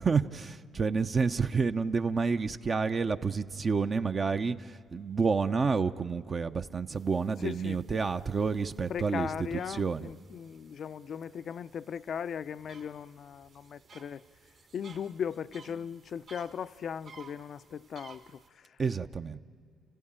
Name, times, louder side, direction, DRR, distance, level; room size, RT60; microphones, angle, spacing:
voice 1, 0.0-10.1 18.8-19.4, right 5 dB, 40° right, 0.7 m, -29 dB
sound 1, 6.9-18.5, right 5 dB, 60° right, 2.1 m, -57 dB
voice 2, 7.4-8.1 8.9-14.2 14.7-18.7, left 7 dB, 60° left, 0.5 m, -38 dB
30.0 x 15.5 x 8.8 m
cardioid pair, 90°, 0 cm